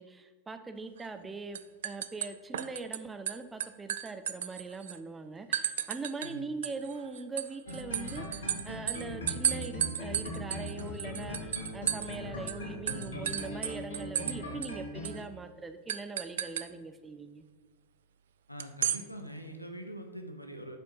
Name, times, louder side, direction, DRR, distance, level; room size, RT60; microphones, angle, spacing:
voice 1, 0.0-17.4, right 3 dB, 15° right, 8 dB, 0.5 m, -42 dB
sound 1, 1.0-1.3 1.5-3.0 3.3-5.0 5.5-6.3 6.6-12.2 12.5-12.6 12.9-14.4 14.6-14.7 15.0-15.2 15.9-16.7 18.6-19.0, right 10 dB, 60° right, 0.3 m, -34 dB
sound 2, 7.7-15.1, left 1 dB, 65° left, 1.4 m, -40 dB
voice 2, 18.5-20.8, right 1 dB, 90° left, 5 dB, 0.7 m, -43 dB
7.4 x 4.3 x 5.5 m, 1.3 s
figure-of-eight pair, 90°, 0 cm